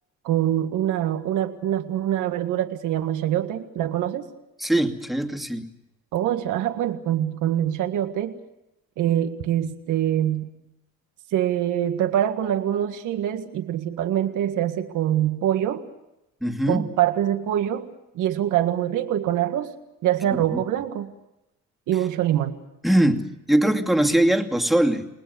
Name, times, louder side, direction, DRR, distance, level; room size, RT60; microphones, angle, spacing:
voice 1, 0.2-4.2 6.1-8.4 9.0-10.5 11.3-15.9 16.7-19.7 20.0-21.1 21.9-22.6, right 11 dB, 90° right, 6 dB, 1.8 m, -24 dB
voice 2, 4.6-5.7 16.4-16.9 20.3-20.6 22.8-25.1, right 1 dB, ahead, 3 dB, 2.6 m, -21 dB
29.5 x 20.0 x 6.9 m, 0.90 s
cardioid pair, 90°, 30 cm